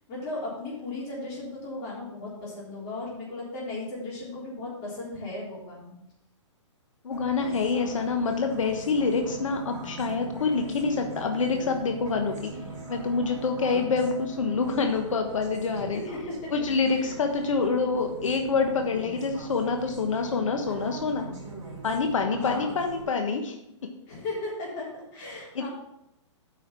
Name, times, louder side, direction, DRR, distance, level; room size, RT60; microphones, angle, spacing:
voice 1, 0.1-5.9 7.8-7.9 15.8-16.5 16.9-17.1 22.3-22.7 24.1-25.7, left 2 dB, 30° left, -5 dB, 3.6 m, -36 dB
voice 2, 7.0-12.4 12.9-16.0 16.5-21.3 21.8-23.6 25.5-25.7, left 4 dB, 85° left, 4 dB, 1.2 m, -26 dB
sound 1, 7.1-23.0, right 2 dB, 20° right, 3.5 m, -41 dB
8.4 x 5.7 x 5.7 m, 0.83 s
hypercardioid pair, 165°, 16 cm